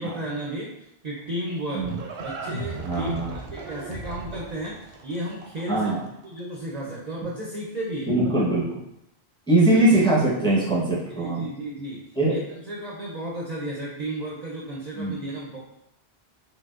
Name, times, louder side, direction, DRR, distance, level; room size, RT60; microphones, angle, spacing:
voice 1, 0.0-1.9 2.2-3.1 3.5-5.9 6.2-8.1 11.1-15.6, right 1 dB, 50° right, -4 dB, 0.5 m, -33 dB
Livestock farm animals working animals, 1.2-6.3, right 3 dB, 80° right, 0.8 m, -36 dB
voice 2, 2.8-3.3 5.7-6.0 8.1-8.6 9.5-11.5 12.2-12.3 15.0-15.2, right 2 dB, 5° left, -7 dB, 0.8 m, -21 dB
4.4 x 2.1 x 2.4 m, 0.81 s
omnidirectional pair, 1.0 m